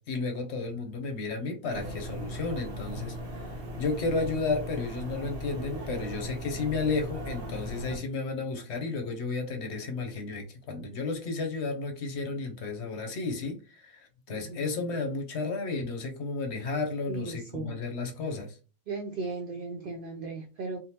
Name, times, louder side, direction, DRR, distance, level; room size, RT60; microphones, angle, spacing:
voice 1, 0.1-18.6, left 3 dB, 60° left, 4 dB, 0.9 m, -33 dB
sound 1, 1.7-8.0, equal, 50° right, 0.9 m, -38 dB
voice 2, 14.3-14.7 17.1-17.8 18.9-20.8, right 3 dB, 75° right, 3 dB, 0.5 m, -36 dB
3.5 x 2.1 x 2.8 m, 0.35 s
omnidirectional pair, 1.4 m